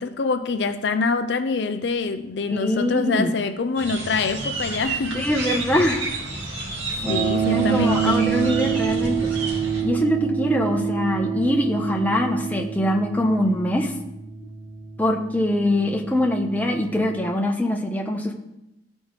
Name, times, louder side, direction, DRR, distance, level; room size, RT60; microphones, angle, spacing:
voice 1, 0.0-5.3 7.1-8.2, left 4 dB, 70° left, 0.5 m, -25 dB
voice 2, 2.5-3.3 5.1-6.1 7.5-9.3 9.8-13.9 15.0-18.3, left 1 dB, 10° left, 0.9 m, -23 dB
sound 1, 3.8-9.8, right 3 dB, 85° right, 2.1 m, -31 dB
sound 2, 7.0-17.1, right 8 dB, 20° right, 2.3 m, -27 dB
14.0 x 5.3 x 3.2 m
head